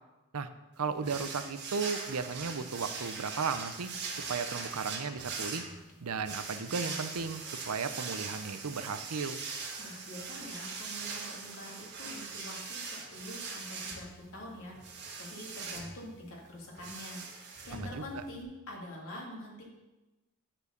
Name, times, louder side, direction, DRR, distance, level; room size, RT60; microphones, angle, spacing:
voice 1, 0.8-3.9 4.3-5.6 6.0-9.4 17.7-18.2, right 5 dB, 85° right, 11 dB, 0.6 m, -35 dB
sound 1, 1.0-18.4, right 4 dB, 55° right, 1.5 m, -41 dB
voice 2, 9.8-19.7, left 1 dB, 65° left, -2 dB, 2.4 m, -45 dB
9.8 x 4.5 x 6.7 m, 1.1 s
head